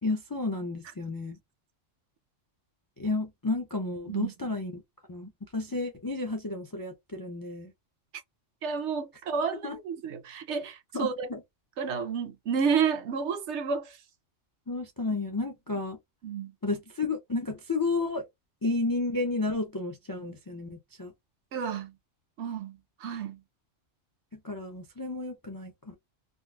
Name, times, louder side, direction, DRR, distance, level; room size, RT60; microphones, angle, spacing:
voice 1, 0.0-1.4 3.0-4.8 5.1-7.7 9.6-9.8 10.9-11.4 14.7-16.0 16.6-18.2 18.6-21.1 24.3-26.0, left 3 dB, 35° left, 0.3 m, -32 dB
voice 2, 4.1-4.5 8.6-11.3 11.8-14.0 16.2-16.5 21.5-21.9 22.4-23.4, right 6 dB, 70° right, 0.9 m, -31 dB
3.8 x 2.4 x 2.3 m
omnidirectional pair, 1.3 m